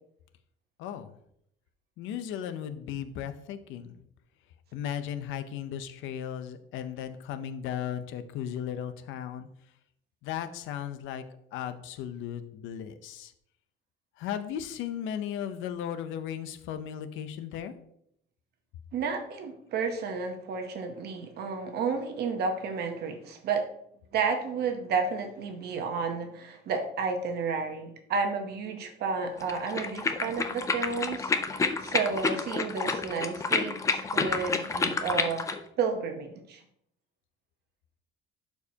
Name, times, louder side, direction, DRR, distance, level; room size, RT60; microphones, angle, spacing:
voice 1, 0.8-1.1 2.0-4.0 4.7-9.5 10.2-11.2 11.5-13.3 14.2-17.7, left 9 dB, 70° left, 11 dB, 0.6 m, -36 dB
voice 2, 18.9-23.6 24.1-35.4 35.8-36.6, right 5 dB, 50° right, 4 dB, 0.9 m, -31 dB
sound 1, 29.4-35.6, left 4 dB, 15° left, 0.4 m, -29 dB
11.5 x 4.6 x 2.8 m, 0.72 s
cardioid pair, 170°, 21 cm